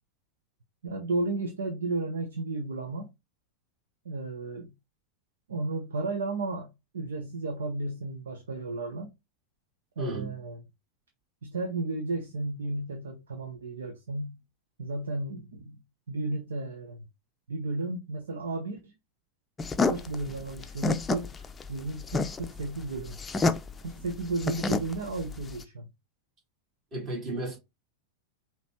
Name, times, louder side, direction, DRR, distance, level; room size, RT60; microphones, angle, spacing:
voice 1, 0.8-3.1 4.0-4.7 5.5-6.7 6.9-9.1 10.0-10.6 11.4-14.4 14.8-17.0 17.5-18.9 19.9-21.3 21.7-23.2 23.8-25.9, right 2 dB, 80° right, 0.8 m, -33 dB
voice 2, 10.0-10.3 26.9-27.6, right 2 dB, 40° right, 3.0 m, -33 dB
sound 1, 19.6-25.6, left 3 dB, 20° left, 0.5 m, -29 dB
5.0 x 3.0 x 3.0 m
hypercardioid pair, 95°, 0 cm